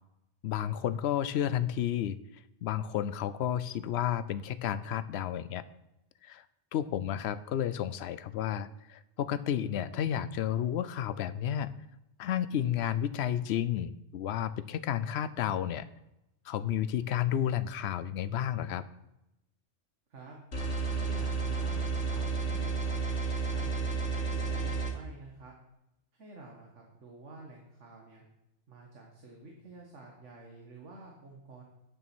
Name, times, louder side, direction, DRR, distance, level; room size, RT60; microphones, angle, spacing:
voice 1, 0.4-2.2 2.6-5.6 6.2-6.4 6.7-11.7 12.2-15.9 16.5-18.8, left 10 dB, 70° left, 15 dB, 0.8 m, -31 dB
sound 1, 20.5-24.9, right 4 dB, 90° left, 2.1 m, -31 dB
voice 2, 20.9-25.5 26.1-28.2 28.7-31.6, right 2 dB, 85° right, 0 dB, 1.8 m, -50 dB
9.0 x 7.1 x 6.1 m, 0.89 s
omnidirectional pair, 1.2 m